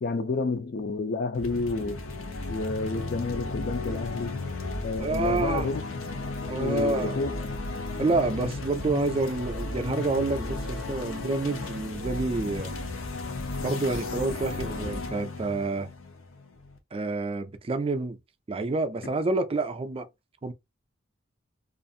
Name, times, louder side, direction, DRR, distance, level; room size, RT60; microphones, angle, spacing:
voice 1, 0.0-2.0 2.5-4.4 4.8-5.8 6.6-7.5, left 3 dB, 50° left, 0.4 m, -30 dB
sound 1, 1.3-16.8, left 2 dB, 85° left, 0.7 m, -34 dB
voice 2, 5.0-5.7 6.5-7.1 8.0-12.8 13.6-15.9 16.9-18.2 18.5-20.1 20.4-20.5, right 3 dB, 30° right, 0.4 m, -28 dB
2.5 x 2.5 x 2.6 m
head